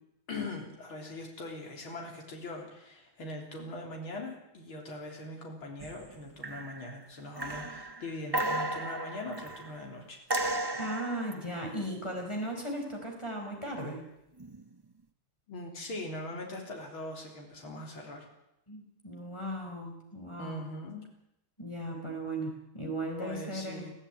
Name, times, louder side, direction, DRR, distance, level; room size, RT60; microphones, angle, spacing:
voice 1, 0.3-10.2 15.5-18.3 20.4-21.1 23.2-23.9, left 2 dB, 75° left, 1 dB, 4.4 m, -41 dB
sound 1, 5.8-6.2 6.4-7.0 7.4-9.8 10.3-11.4 14.4-14.6, right 2 dB, 35° right, 0.4 m, -34 dB
voice 2, 10.8-14.0 18.7-20.6 21.6-23.9, right 1 dB, 15° left, 1 dB, 4.8 m, -37 dB
22.5 x 14.5 x 9.2 m, 0.84 s
omnidirectional pair, 2.3 m